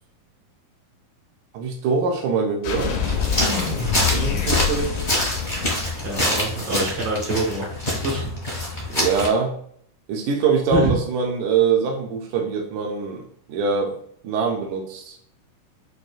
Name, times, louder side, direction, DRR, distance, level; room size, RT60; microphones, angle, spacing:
voice 1, 1.5-2.9 4.1-5.2 8.9-9.5 10.1-14.0 14.2-15.2, right 5 dB, 80° right, 0 dB, 2.0 m, -23 dB
sound 1, 2.6-6.3, left 6 dB, 80° left, 2.1 m, -26 dB
sound 2, 3.0-9.3, left 1 dB, 35° left, 0.7 m, -26 dB
voice 2, 5.9-8.3 8.7-8.8 10.7-10.9, right 2 dB, 65° right, -3 dB, 1.6 m, -25 dB
6.1 x 2.6 x 2.3 m, 0.65 s
omnidirectional pair, 3.6 m